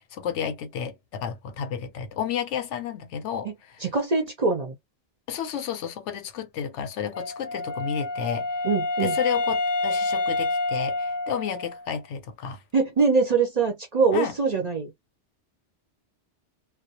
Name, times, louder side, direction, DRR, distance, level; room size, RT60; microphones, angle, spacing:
voice 1, 0.1-3.5 5.3-8.5 9.0-12.6 14.1-14.3, left 8 dB, 85° left, 0.9 m, -31 dB
voice 2, 3.8-4.8 8.6-9.2 12.7-14.9, right 4 dB, 45° right, 0.5 m, -23 dB
Wind instrument woodwind instrument, 7.1-11.9, left 2 dB, 55° left, 0.5 m, -28 dB
2.2 x 2.0 x 2.7 m
omnidirectional pair, 1.2 m